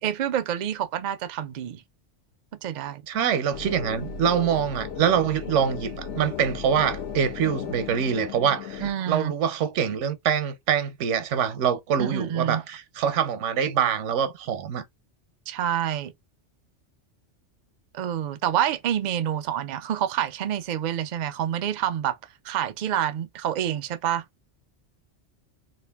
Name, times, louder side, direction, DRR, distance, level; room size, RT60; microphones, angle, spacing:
voice 1, 0.0-1.8 2.6-3.0 8.8-9.3 12.0-12.6 15.5-16.1 17.9-22.2 22.4-24.2, right 10 dB, 65° right, 0.4 m, -27 dB
voice 2, 3.1-14.8, right 8 dB, 85° right, 1.0 m, -25 dB
sound 1, 3.5-8.9, left 7 dB, 80° left, 1.0 m, -36 dB
3.0 x 2.5 x 3.4 m
omnidirectional pair, 1.2 m